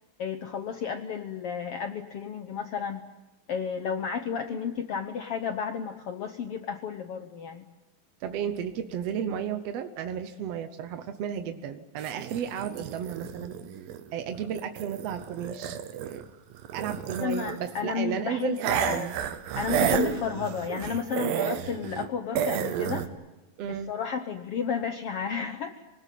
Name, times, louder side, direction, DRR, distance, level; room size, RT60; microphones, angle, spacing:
voice 1, 0.2-3.1 3.5-7.6 17.2-19.1 19.6-23.1 23.7-25.8, left 6 dB, 85° left, 8 dB, 1.3 m, -32 dB
voice 2, 8.2-13.5 14.1-16.2 16.7-19.1 23.6-23.9, right 8 dB, 70° right, 8 dB, 1.5 m, -33 dB
Zombie Noises, 12.0-16.2 16.5-17.8 18.6-22.1 22.4-23.1, right 9 dB, 85° right, 3.0 m, -31 dB
25.0 x 19.0 x 9.2 m, 1.1 s
omnidirectional pair, 4.1 m